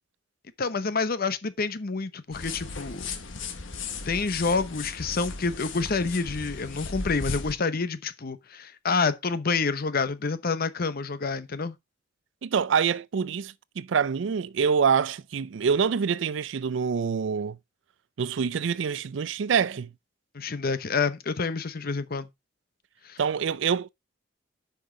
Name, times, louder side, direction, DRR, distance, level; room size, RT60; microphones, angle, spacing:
voice 1, 0.6-3.1 4.1-11.8 20.3-22.3 23.0-23.2, left 4 dB, 50° left, 0.8 m, -28 dB
sound 1, 2.3-7.5, left 4 dB, 80° left, 1.4 m, -36 dB
voice 2, 12.4-17.6 18.2-19.9 23.2-23.9, right 6 dB, 70° right, 0.4 m, -26 dB
8.9 x 5.4 x 3.8 m
head